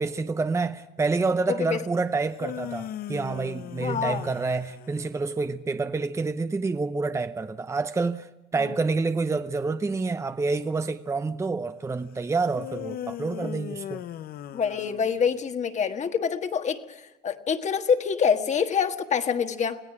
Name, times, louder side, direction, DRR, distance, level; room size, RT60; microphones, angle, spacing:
voice 1, 0.0-14.0, right 3 dB, 15° right, 0.7 m, -28 dB
voice 2, 1.5-1.8 3.8-4.3 8.6-8.7 14.5-19.8, left 6 dB, 45° left, 1.6 m, -26 dB
sound 1, 2.1-5.4 12.5-15.5, left 11 dB, 65° left, 0.8 m, -38 dB
26.0 x 17.5 x 6.0 m
cardioid pair, 110°, 17 cm